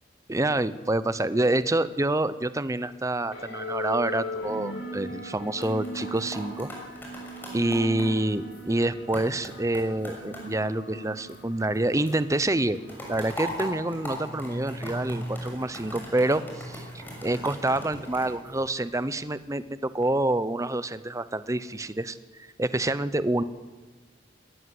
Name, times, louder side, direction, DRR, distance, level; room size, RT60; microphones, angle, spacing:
voice 1, 0.3-6.7 7.5-12.8 13.1-16.8 17.2-22.2 22.6-23.4, right 1 dB, 20° right, 14 dB, 0.8 m, -27 dB
sound 1, 3.3-18.1, equal, 90° left, 6.4 m, -39 dB
sound 2, 5.5-11.8 12.1-19.2 19.7-20.1, equal, 10° left, 6.6 m, -41 dB
sound 3, 9.0-18.5, right 1 dB, 65° right, 4.9 m, -55 dB
19.5 x 19.5 x 7.9 m, 1.3 s
head